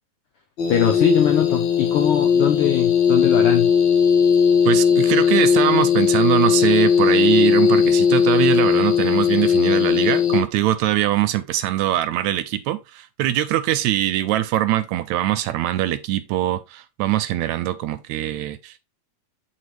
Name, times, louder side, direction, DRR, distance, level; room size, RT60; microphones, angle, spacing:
sound 1, 0.6-10.4, left 7 dB, 55° left, 1.4 m, -18 dB
voice 1, 0.7-3.7, left 8 dB, 85° left, 1.2 m, -21 dB
voice 2, 4.7-18.8, right 13 dB, 80° right, 1.8 m, -22 dB
7.8 x 4.2 x 3.1 m
omnidirectional pair, 3.4 m